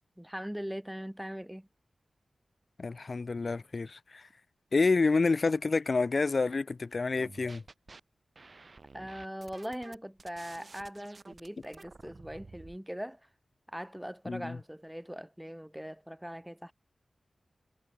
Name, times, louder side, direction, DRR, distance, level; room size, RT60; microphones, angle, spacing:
voice 1, 0.2-1.7 8.9-13.2 13.7-16.7, equal, 5° right, 1.6 m, -41 dB
voice 2, 2.8-4.2 4.7-7.6 14.3-14.6, left 3 dB, 50° left, 0.3 m, -28 dB
sound 1, 7.2-8.0 8.3-12.8, right 3 dB, 45° right, 2.2 m, -51 dB
wide cardioid pair, 85°, 0 cm